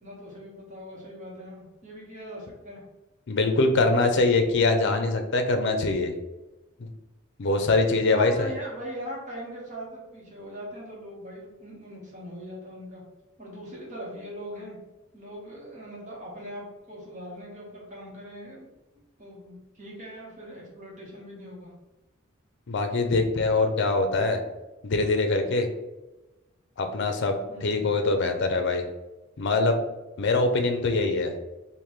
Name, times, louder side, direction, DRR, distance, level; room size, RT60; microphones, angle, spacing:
voice 1, 0.0-2.8 8.1-13.0 13.4-14.8 15.1-18.7 19.2-21.7 27.5-27.8, equal, 40° right, -4 dB, 1.4 m, -41 dB
voice 2, 3.3-6.1 6.8-6.9 7.4-8.5 22.7-24.4 24.8-25.7 26.8-28.8 29.4-29.8 30.2-31.3, left 3 dB, 65° left, 6 dB, 0.5 m, -23 dB
3.6 x 2.6 x 3.1 m, 1.1 s
head